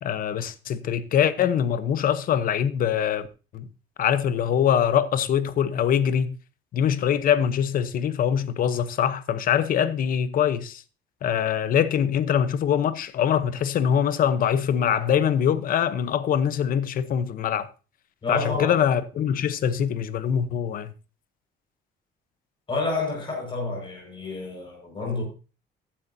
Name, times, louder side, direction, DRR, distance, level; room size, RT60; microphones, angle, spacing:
voice 1, 0.0-3.3 3.5-3.7 4.0-6.4 6.7-10.8 11.2-17.7 18.3-20.9, left 9 dB, 50° left, 0.9 m, -23 dB
voice 2, 18.2-18.8 22.7-25.2, left 3 dB, 25° left, 5.5 m, -29 dB
14.0 x 10.0 x 2.7 m
cardioid pair, 160°, 19 cm